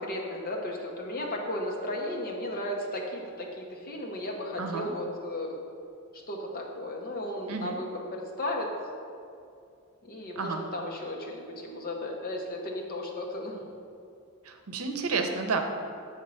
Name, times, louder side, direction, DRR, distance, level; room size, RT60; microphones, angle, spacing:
voice 1, 0.0-5.6 6.1-8.7 10.0-13.6, left 1 dB, 45° left, -1 dB, 1.0 m, -35 dB
voice 2, 4.6-4.9 7.5-7.8 10.3-10.6 14.4-15.6, right 4 dB, 85° right, 5 dB, 0.7 m, -31 dB
7.5 x 3.7 x 5.5 m, 2.5 s
head